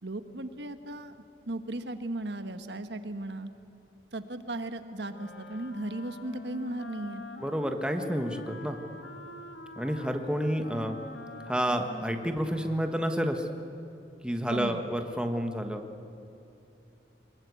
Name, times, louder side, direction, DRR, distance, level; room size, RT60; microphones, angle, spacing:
voice 1, 0.0-3.5 4.1-7.2 14.5-14.8, right 1 dB, 75° right, 9 dB, 1.4 m, -36 dB
Wind instrument woodwind instrument, 5.1-13.7, left 2 dB, 90° left, 1.9 m, -45 dB
voice 2, 7.4-8.8 9.7-11.0 11.5-13.5 14.2-15.8, equal, 5° right, 5 dB, 1.4 m, -30 dB
24.0 x 22.0 x 8.4 m, 2.8 s
head